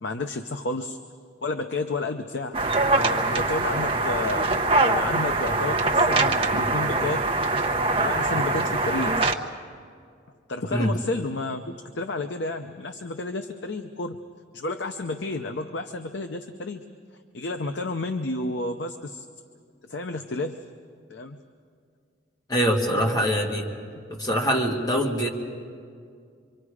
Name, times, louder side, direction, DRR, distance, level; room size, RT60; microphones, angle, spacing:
voice 1, 0.0-1.0 1.4-2.6 2.9-7.3 8.0-9.3 10.5-14.2 14.5-16.8 17.3-19.3 19.9-20.6 21.1-21.4 22.9-23.1, left 2 dB, 60° left, 6 dB, 0.7 m, -31 dB
sound 1, 2.5-9.3, right 2 dB, 30° right, 0.9 m, -23 dB
voice 2, 22.5-23.7 24.1-25.3, equal, 20° left, -1 dB, 1.9 m, -24 dB
26.5 x 24.5 x 4.9 m, 2.2 s
head